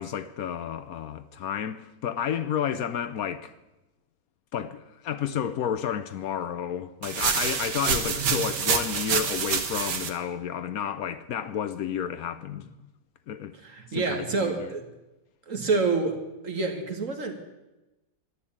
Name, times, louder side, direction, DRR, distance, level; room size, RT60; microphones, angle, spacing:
voice 1, 0.0-3.5 4.5-12.7 13.3-13.5 13.9-14.7, left 8 dB, 65° left, 1.1 m, -31 dB
sound 1, 7.0-10.1, right 6 dB, 85° right, 1.9 m, -27 dB
voice 2, 13.6-14.8 15.5-16.2 16.4-17.4, right 4 dB, 50° right, 2.1 m, -28 dB
12.5 x 11.5 x 8.7 m
omnidirectional pair, 1.8 m